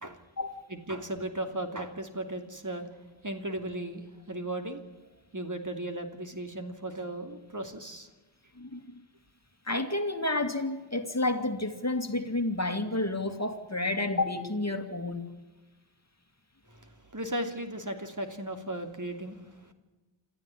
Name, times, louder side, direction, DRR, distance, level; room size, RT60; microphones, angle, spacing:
voice 1, 0.7-2.9 3.2-4.8 5.3-8.1 16.7-19.7, right 1 dB, 40° right, 6 dB, 2.9 m, -36 dB
voice 2, 8.6-9.0 9.6-15.2, left 2 dB, 35° left, 7 dB, 2.4 m, -30 dB
28.0 x 14.0 x 9.9 m, 1.2 s
wide cardioid pair, 50°, 48 cm